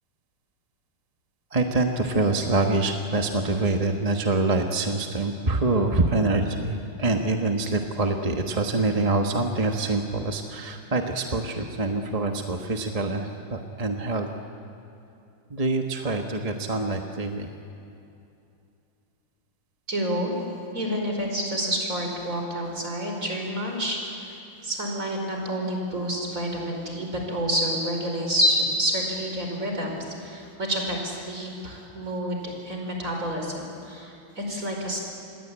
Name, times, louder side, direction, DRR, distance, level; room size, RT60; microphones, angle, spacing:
voice 1, 1.5-14.3 15.5-17.5, right 2 dB, 20° right, 3 dB, 1.1 m, -25 dB
voice 2, 19.9-20.3 20.7-24.3 24.6-35.0, equal, 40° right, 1 dB, 5.3 m, -28 dB
28.5 x 21.0 x 8.9 m, 2.7 s
omnidirectional pair, 2.3 m